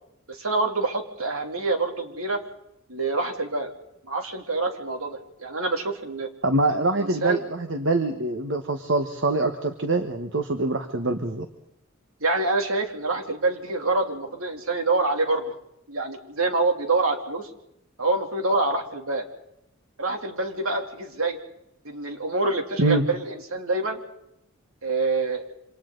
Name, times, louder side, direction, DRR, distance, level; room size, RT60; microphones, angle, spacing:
voice 1, 0.3-2.4 2.9-3.7 4.1-6.3 6.7-7.4 12.2-15.5 15.9-17.5 18.0-19.3 20.0-21.4 21.8-24.0 24.8-25.4, right 3 dB, 80° right, 3 dB, 3.0 m, -26 dB
voice 2, 6.4-11.5 22.8-23.0, right 2 dB, 60° right, 7 dB, 1.3 m, -24 dB
28.0 x 26.5 x 3.9 m, 0.79 s
head